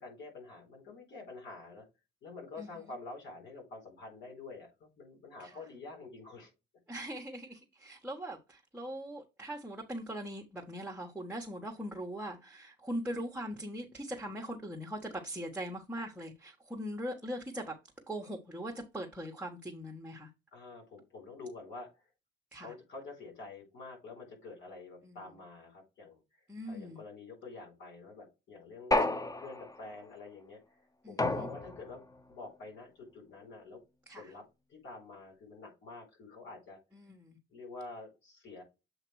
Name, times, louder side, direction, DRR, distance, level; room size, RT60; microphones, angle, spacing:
voice 1, 0.0-1.9 2.2-6.5 20.5-22.1 22.5-32.0 32.3-33.8 34.1-34.4 34.7-36.8 37.5-38.6, left 3 dB, 65° left, 4.3 m, -48 dB
voice 2, 6.9-17.7 18.1-20.3 22.5-22.7 25.0-25.2 26.5-27.0 29.0-29.1 31.0-31.5 34.1-34.3 36.9-37.4, equal, 5° right, 1.3 m, -41 dB
sound 1, 28.9-29.9 31.2-32.0, left 2 dB, 15° left, 0.6 m, -31 dB
7.9 x 2.9 x 4.7 m
cardioid pair, 90°, 20 cm